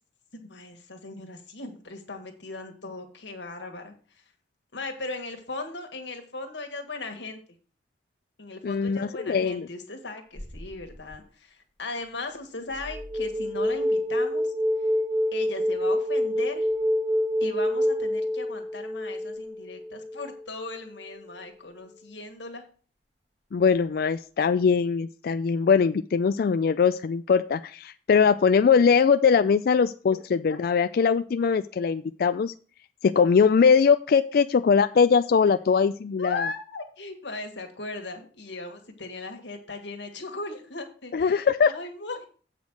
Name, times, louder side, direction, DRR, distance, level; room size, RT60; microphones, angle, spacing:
voice 1, 0.3-4.2 4.7-7.4 8.4-14.5 15.3-16.7 17.4-22.6 30.5-30.6 35.4-35.6 36.2-42.3, left 3 dB, 80° left, 4 dB, 1.8 m, -38 dB
voice 2, 8.6-9.7 23.5-32.5 33.0-36.4 41.1-41.7, left 6 dB, 55° left, 11 dB, 0.3 m, -21 dB
sound 1, 10.4-11.1 12.8-20.5, equal, 35° right, 2.3 m, -27 dB
8.1 x 5.2 x 6.2 m, 0.40 s
head